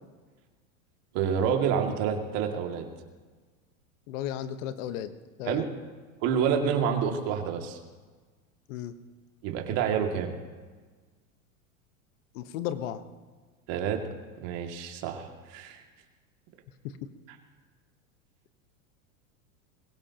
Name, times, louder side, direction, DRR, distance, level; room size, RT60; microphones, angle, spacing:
voice 1, 1.1-2.9 5.5-5.7 6.2-7.8 9.4-10.3 13.7-15.8, right 7 dB, 55° right, 2 dB, 2.4 m, -28 dB
voice 2, 4.1-5.1 5.4-5.6 8.7-8.9 12.3-13.0 16.8-17.0, left 10 dB, 65° left, 11 dB, 1.2 m, -34 dB
21.5 x 16.5 x 2.9 m, 1.4 s
hypercardioid pair, 105°, 41 cm